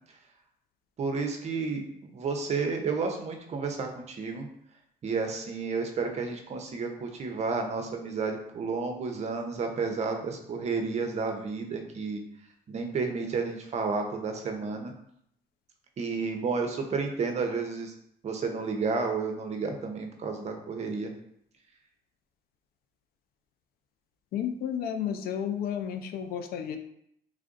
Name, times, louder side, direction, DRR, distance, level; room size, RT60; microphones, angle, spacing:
voice 1, 1.0-4.5 5.0-12.2 12.7-14.9 16.0-17.9 18.2-21.1, right 4 dB, 40° right, 4 dB, 0.6 m, -31 dB
voice 2, 24.3-26.8, left 8 dB, 65° left, 8 dB, 0.4 m, -32 dB
3.3 x 2.5 x 3.7 m, 0.72 s
cardioid pair, 110°, 17 cm